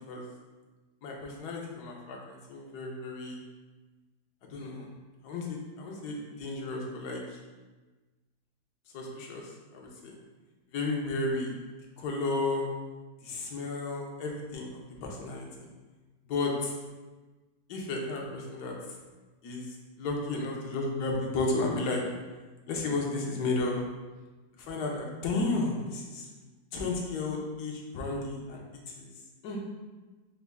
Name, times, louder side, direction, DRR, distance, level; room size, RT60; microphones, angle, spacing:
voice 1, 1.0-3.4 4.5-4.9 5.2-7.2 8.9-9.5 9.7-10.1 10.7-11.5 12.0-12.7 13.2-14.7 15.0-15.4 16.3-16.7 17.7-18.7 19.4-19.7 20.0-22.0 22.7-23.8 24.6-26.2 26.7-28.6 29.0-29.1 29.4-29.6, left 3 dB, 85° left, -1 dB, 1.3 m, -33 dB
5.3 x 2.2 x 3.4 m, 1.2 s
omnidirectional pair, 1.7 m